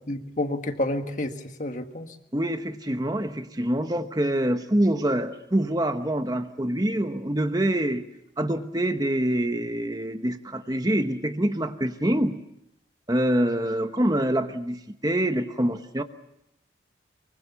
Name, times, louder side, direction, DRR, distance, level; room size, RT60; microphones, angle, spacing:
voice 1, 0.1-2.1, left 1 dB, 40° left, 1.7 m, -29 dB
voice 2, 2.3-8.0 8.4-12.4 13.1-16.0, right 1 dB, 20° right, 1.0 m, -25 dB
24.5 x 23.5 x 7.0 m
head